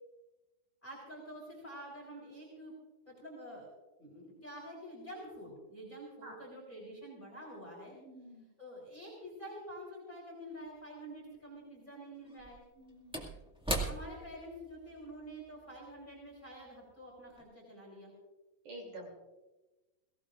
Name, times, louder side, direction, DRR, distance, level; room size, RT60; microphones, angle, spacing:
voice 1, 0.8-2.7 3.0-3.7 4.0-8.0 8.6-12.6 13.9-18.1, equal, 20° left, -2 dB, 4.4 m, -48 dB
voice 2, 7.9-8.5 11.9-12.0 12.8-13.2 18.6-19.2, right 1 dB, 55° right, 0 dB, 4.1 m, -49 dB
Slam / Wood, 10.7-10.8 12.2-16.9 17.3-17.4, right 1 dB, 5° right, 0.6 m, -41 dB
22.5 x 17.5 x 2.5 m, 1.1 s
omnidirectional pair, 4.2 m